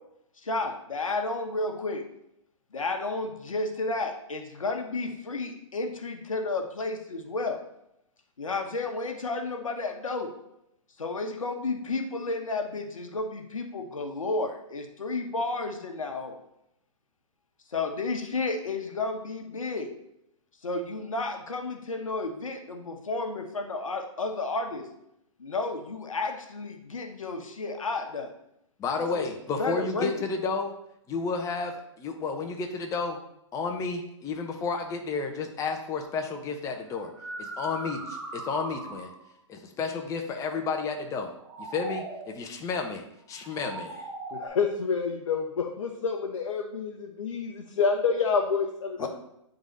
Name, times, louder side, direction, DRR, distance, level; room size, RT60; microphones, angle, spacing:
voice 1, 0.4-2.0 2.7-7.6 8.4-10.3 11.0-16.4 17.7-19.9 20.6-24.9 25.4-28.3 29.1-29.3 29.6-30.3 49.0-49.1, left 3 dB, 90° left, 4 dB, 1.1 m, -32 dB
voice 2, 28.8-30.7 31.1-33.2 33.5-37.1 37.4-39.1 39.5-41.3 41.6-44.1 49.0-49.1, left 4 dB, 20° left, 4 dB, 0.9 m, -31 dB
sound 1, 36.0-36.2 37.0-39.3 41.2-42.4 43.3-44.5, right 2 dB, 50° right, 2.0 m, -39 dB
voice 3, 44.3-49.1, left 5 dB, 70° left, 1 dB, 0.9 m, -28 dB
9.1 x 3.9 x 3.9 m, 0.80 s
hypercardioid pair, 130°, 17 cm